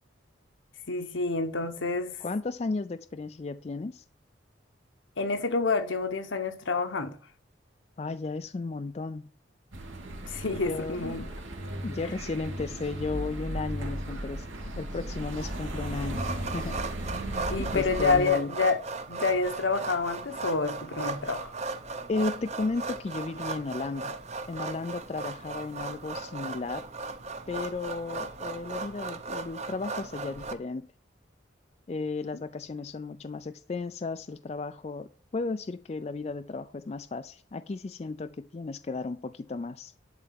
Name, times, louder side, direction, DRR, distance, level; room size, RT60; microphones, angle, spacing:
voice 1, 0.9-2.2 5.2-7.1 10.1-11.3 17.5-18.8 19.1-21.5 32.3-32.4, left 4 dB, 80° left, 1.2 m, -28 dB
voice 2, 2.2-4.0 8.0-9.2 10.7-11.2 11.8-14.5 14.8-16.8 17.7-18.5 22.1-24.2 24.5-26.9 27.5-30.9 31.9-39.9, left 3 dB, 35° left, 0.3 m, -34 dB
sound 1, 9.7-18.3, right 1 dB, 90° right, 2.5 m, -36 dB
sound 2, 16.1-30.5, right 3 dB, 35° right, 0.7 m, -37 dB
11.0 x 4.1 x 7.5 m
head